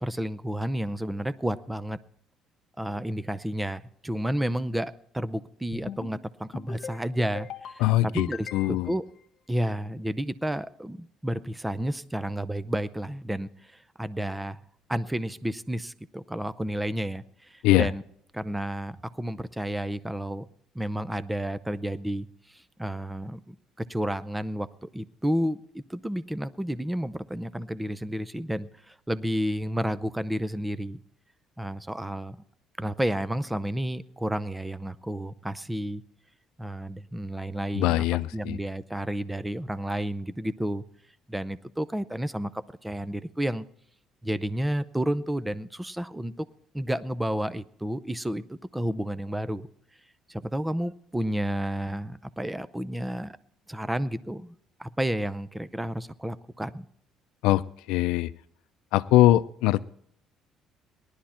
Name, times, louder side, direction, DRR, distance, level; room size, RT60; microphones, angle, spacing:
voice 1, 0.0-2.0 2.8-9.0 9.5-14.6 14.9-18.0 18.3-20.5 20.7-23.6 23.9-31.0 31.6-32.4 32.8-36.0 36.6-38.1 38.3-40.8 41.3-42.5 42.8-43.6 44.2-46.5 46.7-49.7 50.3-53.3 53.7-54.5 54.8-56.8, right 1 dB, 5° right, 14 dB, 0.5 m, -31 dB
sound 1, 5.7-6.2 6.5-7.0 7.4-7.8 8.2-8.9, left 7 dB, 50° left, 1.5 m, -40 dB
voice 2, 7.8-8.9 17.6-17.9 37.7-38.6 57.4-58.3 58.9-59.8, left 15 dB, 90° left, 15 dB, 0.5 m, -22 dB
19.0 x 11.5 x 4.3 m, 0.68 s
cardioid pair, 145°, 0 cm